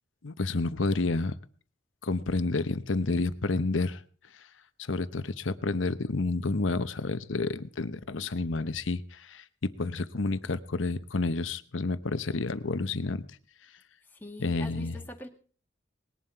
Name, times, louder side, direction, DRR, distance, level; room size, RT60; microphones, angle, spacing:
voice 1, 0.2-1.3 2.0-4.0 4.9-13.2 14.4-15.0, left 3 dB, 85° left, 13 dB, 0.9 m, -30 dB
voice 2, 14.1-15.3, left 2 dB, 10° left, 2 dB, 1.8 m, -43 dB
19.5 x 11.0 x 4.5 m, 0.43 s
head